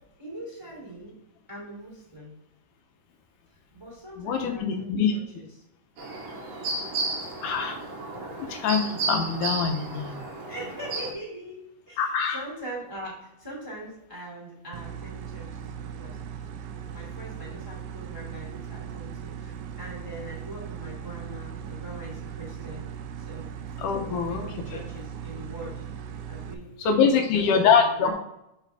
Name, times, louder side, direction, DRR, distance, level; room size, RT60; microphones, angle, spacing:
voice 1, 0.2-1.1 1.5-2.4 3.7-5.4 8.1-8.3 10.0-10.1 10.5-16.2 16.7-22.8 23.2-23.5 23.9-25.8 26.3-28.1, right 1 dB, 10° right, -5 dB, 1.8 m, -42 dB
voice 2, 4.2-5.1 7.4-7.8 8.4-10.2 12.0-12.4 23.8-24.4 26.8-28.1, left 6 dB, 80° left, 4 dB, 2.3 m, -24 dB
sound 1, 6.0-11.1, right 3 dB, 65° right, 2.1 m, -33 dB
sound 2, 14.7-26.5, right 8 dB, 85° right, 2.2 m, -38 dB
6.6 x 5.9 x 3.4 m, 0.84 s
omnidirectional pair, 3.7 m